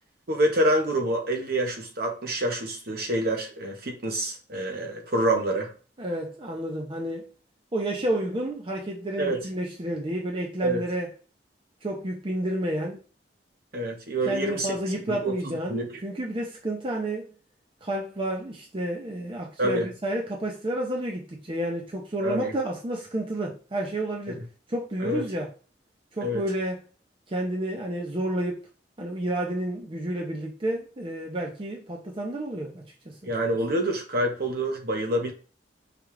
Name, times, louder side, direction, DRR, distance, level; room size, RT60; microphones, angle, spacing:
voice 1, 0.3-5.7 9.2-9.4 10.6-10.8 13.7-14.7 15.1-16.0 19.6-19.9 22.2-22.5 25.0-25.2 26.2-26.4 33.3-35.3, right 1 dB, 55° right, 0.9 m, -27 dB
voice 2, 6.0-7.3 7.7-11.1 11.8-13.0 14.3-17.3 17.8-24.4 24.7-25.5 26.1-26.8 27.3-28.6 29.0-33.3, right 1 dB, 30° right, 0.6 m, -30 dB
4.9 x 2.4 x 3.1 m
head